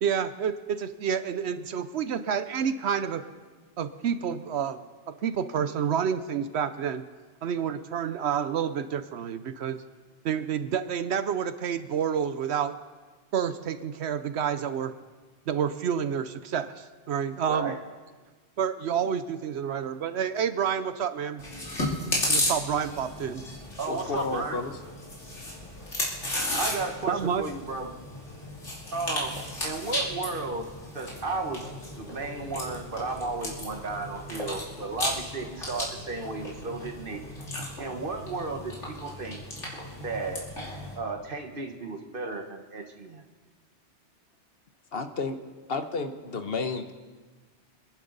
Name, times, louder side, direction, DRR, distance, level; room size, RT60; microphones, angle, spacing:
voice 1, 0.0-3.2 3.8-4.8 5.2-7.0 7.4-9.8 10.2-12.7 13.3-14.9 15.5-17.7 18.6-21.4 22.3-23.4 27.1-27.4, right 8 dB, 70° right, 11 dB, 0.9 m, -29 dB
voice 2, 17.5-17.8 23.8-24.6 26.6-28.0 28.9-29.3 29.6-30.7 30.9-31.6 32.0-37.2 37.8-39.4 40.0-40.5 41.0-43.2, right 3 dB, 50° right, 5 dB, 1.4 m, -34 dB
Chewing mastication, 21.4-41.0, left 1 dB, 85° left, 3.2 m, -34 dB
voice 3, 23.9-24.7 44.9-45.4 45.7-46.9, left 4 dB, 60° left, 8 dB, 1.1 m, -31 dB
sound 1, 31.4-36.9, equal, 35° right, 2.6 m, -51 dB
26.0 x 10.5 x 4.0 m, 1.4 s
omnidirectional pair, 1.2 m